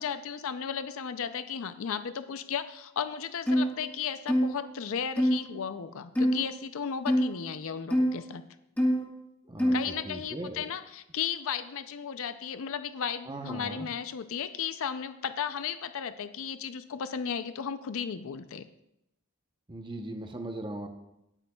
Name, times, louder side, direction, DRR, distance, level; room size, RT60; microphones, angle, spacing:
voice 1, 0.0-8.4 9.7-18.7, left 7 dB, 65° left, 11 dB, 0.5 m, -35 dB
sound 1, 3.5-3.7 4.3-4.5 5.2-5.4 6.1-6.4 7.1-7.3 7.9-8.1 8.8-9.0 9.6-9.9, equal, 5° left, 1.4 m, -24 dB
voice 2, 10.1-10.6 13.3-13.9 19.7-20.9, right 1 dB, 20° right, 4 dB, 0.8 m, -38 dB
18.0 x 8.1 x 2.3 m, 0.84 s
head